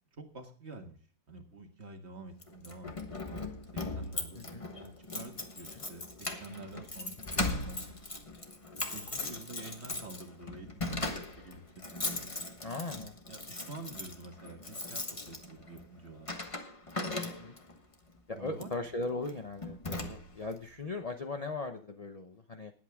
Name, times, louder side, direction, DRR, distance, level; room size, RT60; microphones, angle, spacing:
voice 1, 0.1-1.0 1.3-3.5 4.0-8.3 8.9-12.1 12.9-16.4 18.3-18.8, right 2 dB, 35° right, 4 dB, 1.8 m, -48 dB
Keys jangling, 2.4-17.8 18.5-18.8 19.2-19.4 19.6-20.5, left 2 dB, 20° left, 1.1 m, -39 dB
voice 2, 12.6-13.1 17.2-17.5 18.3-22.7, left 3 dB, 50° left, 6 dB, 0.4 m, -38 dB
19.5 x 8.4 x 3.6 m, 0.41 s
omnidirectional pair, 2.0 m